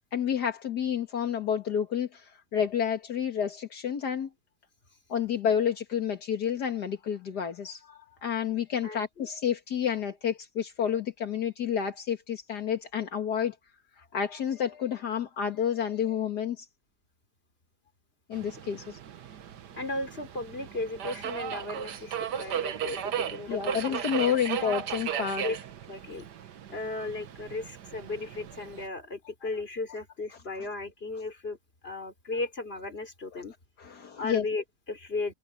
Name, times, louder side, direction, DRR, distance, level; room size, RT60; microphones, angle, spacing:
voice 1, 0.1-4.3 5.1-13.6 14.1-16.7 18.3-19.0 22.3-22.6 23.5-25.5 33.3-33.4 33.8-34.5, left 8 dB, 75° left, 2.2 m, -30 dB
voice 2, 8.8-9.3 19.7-24.0 24.2-24.3 25.4-25.6 25.9-26.3 26.7-31.6 31.8-33.5 34.2-35.3, left 2 dB, 35° left, 3.9 m, -36 dB
Subway metro underground, 18.3-28.9, right 9 dB, 85° right, 1.7 m, -36 dB
omnidirectional pair, 1.7 m